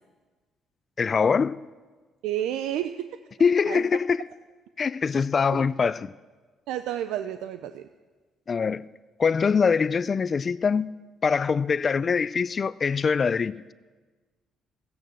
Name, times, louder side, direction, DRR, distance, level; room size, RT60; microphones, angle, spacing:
voice 1, 1.0-1.6 3.4-4.2 4.8-6.1 8.5-8.8 9.2-10.9 11.2-13.7, left 5 dB, 40° left, 0.4 m, -23 dB
voice 2, 2.2-3.1 3.7-3.9 5.5-5.6 6.7-7.9, right 11 dB, 80° right, 0.5 m, -30 dB
14.0 x 9.2 x 7.7 m
supercardioid pair, 70°, 0 cm